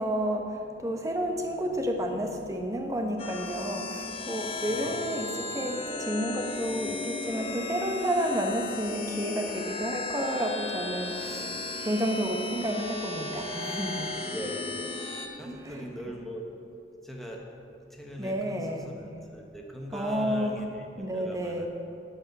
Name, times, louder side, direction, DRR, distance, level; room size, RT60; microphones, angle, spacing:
voice 1, 0.0-11.5 11.8-14.2 15.4-15.8 18.2-18.9 19.9-20.6 21.0-21.7, equal, 20° right, 3 dB, 1.0 m, -31 dB
sound 1, 3.2-15.3, left 2 dB, 35° left, 1.1 m, -35 dB
voice 2, 4.7-5.1 7.6-7.7 14.3-14.8 15.4-16.6 17.0-17.4 17.8-21.7, equal, ahead, -1 dB, 1.2 m, -40 dB
11.0 x 5.0 x 7.9 m, 2.4 s
head